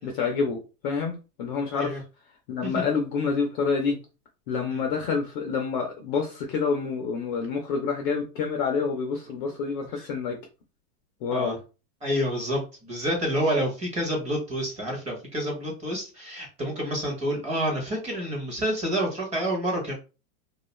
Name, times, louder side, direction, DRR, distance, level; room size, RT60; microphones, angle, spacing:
voice 1, 0.0-2.0 2.5-4.0 4.5-10.4 11.2-11.6, left 5 dB, 35° left, 2 dB, 0.4 m, -28 dB
voice 2, 12.0-19.9, equal, 15° right, -1 dB, 0.7 m, -28 dB
2.3 x 2.3 x 3.0 m, 0.32 s
supercardioid pair, 145°, 48 cm